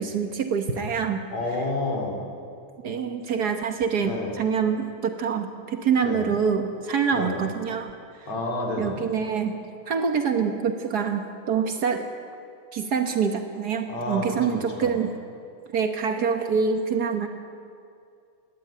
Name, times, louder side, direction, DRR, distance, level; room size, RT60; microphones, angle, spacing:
voice 1, 0.0-1.2 1.5-1.7 2.8-8.3 8.8-9.6 9.9-12.1 12.7-15.1 15.7-17.3, right 6 dB, 90° right, 5 dB, 0.8 m, -26 dB
voice 2, 1.3-2.2 4.0-4.4 6.0-6.3 7.1-7.4 8.3-9.0 13.9-14.9, left 2 dB, 60° left, 0 dB, 5.0 m, -30 dB
21.0 x 16.5 x 9.4 m, 2.4 s
omnidirectional pair, 3.5 m